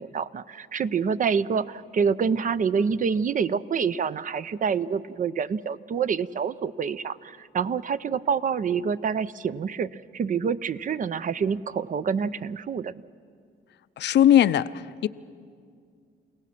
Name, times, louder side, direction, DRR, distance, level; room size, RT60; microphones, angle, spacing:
voice 1, 0.0-12.9, right 6 dB, 45° right, 15 dB, 0.5 m, -27 dB
voice 2, 14.0-14.7 15.0-15.1, left 11 dB, 60° left, 15 dB, 0.5 m, -18 dB
29.0 x 17.0 x 5.9 m, 2.2 s
cardioid pair, 90°, 20 cm